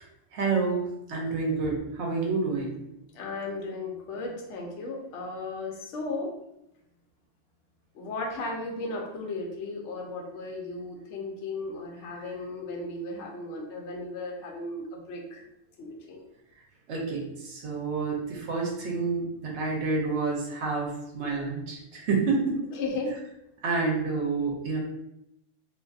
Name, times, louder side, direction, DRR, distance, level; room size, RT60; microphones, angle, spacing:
voice 1, 0.3-0.8 1.1-2.8 16.9-22.6 23.6-24.8, right 4 dB, 70° right, -1 dB, 0.9 m, -28 dB
voice 2, 3.1-6.3 7.9-15.4 15.8-16.2 22.7-23.1, left 2 dB, 70° left, 0 dB, 0.9 m, -35 dB
2.5 x 2.5 x 2.3 m, 0.82 s
omnidirectional pair, 1.3 m